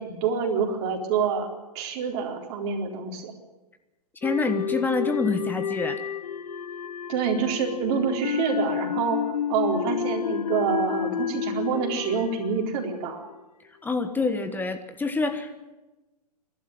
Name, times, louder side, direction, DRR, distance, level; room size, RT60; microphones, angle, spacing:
voice 1, 0.0-1.5 1.7-3.3 7.1-13.2, right 6 dB, 40° right, 2 dB, 4.2 m, -27 dB
sound 1, 4.2-13.4, left 8 dB, 70° left, 0.9 m, -30 dB
voice 2, 4.2-6.0 13.8-15.7, left 3 dB, 10° left, 8 dB, 1.4 m, -27 dB
27.5 x 12.0 x 9.2 m, 1.1 s
hypercardioid pair, 125°, 21 cm